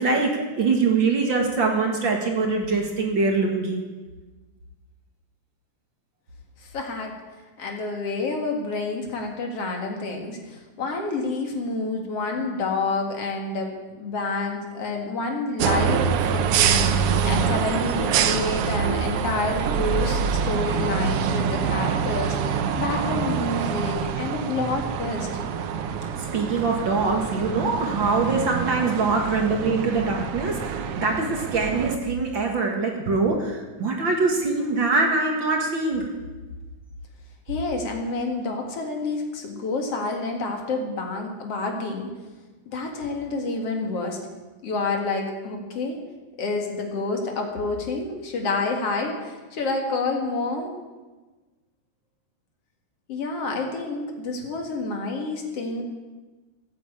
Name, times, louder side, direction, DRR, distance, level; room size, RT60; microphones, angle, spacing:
voice 1, 0.0-3.8 26.2-36.1, right 3 dB, 45° right, 1 dB, 2.0 m, -23 dB
voice 2, 6.6-7.1 7.6-25.3 37.5-42.1 42.7-44.2 44.6-46.0 46.4-50.7 53.1-55.8, left 3 dB, 50° left, 2 dB, 2.8 m, -28 dB
sound 1, 15.6-32.0, right 7 dB, 70° right, 1.4 m, -25 dB
14.5 x 8.7 x 8.5 m, 1.2 s
omnidirectional pair, 3.6 m